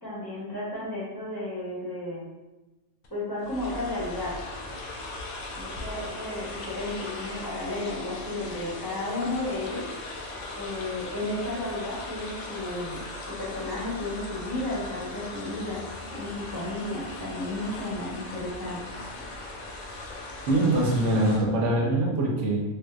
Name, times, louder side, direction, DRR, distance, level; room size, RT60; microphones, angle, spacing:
voice 1, 0.0-2.2 3.1-4.4 5.6-9.9 10.6-13.0 13.3-15.8 16.1-18.8, left 2 dB, 20° left, -8 dB, 0.8 m, -33 dB
sound 1, 3.0-3.1 3.4-21.4, left 2 dB, 75° left, 0.4 m, -39 dB
voice 2, 20.5-22.6, right 1 dB, 75° right, -2 dB, 1.0 m, -23 dB
3.4 x 2.6 x 2.3 m, 1.1 s
omnidirectional pair, 1.3 m